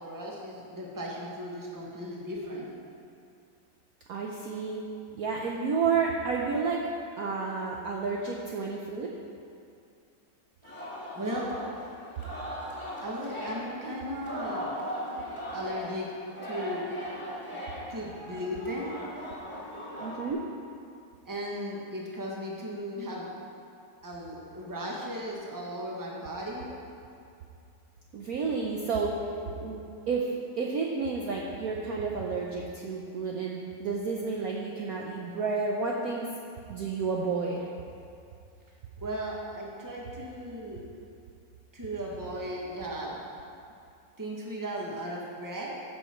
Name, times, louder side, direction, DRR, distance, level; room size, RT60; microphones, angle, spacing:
voice 1, 0.0-2.7 11.1-11.5 13.0-14.8 15.5-16.1 16.4-16.9 17.9-19.0 21.2-23.3 24.0-26.7 29.4-29.5 39.0-40.8 41.7-43.2 44.2-45.7, equal, 10° right, -3 dB, 1.2 m, -36 dB
voice 2, 4.1-4.8 5.1-6.8 7.2-9.1 20.0-20.4 28.1-29.1 29.6-36.3 36.7-37.7, right 5 dB, 60° right, -2 dB, 1.0 m, -31 dB
Singing, 10.6-20.3, equal, 15° left, 2.6 m, -39 dB
14.5 x 6.0 x 4.5 m, 2.5 s
omnidirectional pair, 2.1 m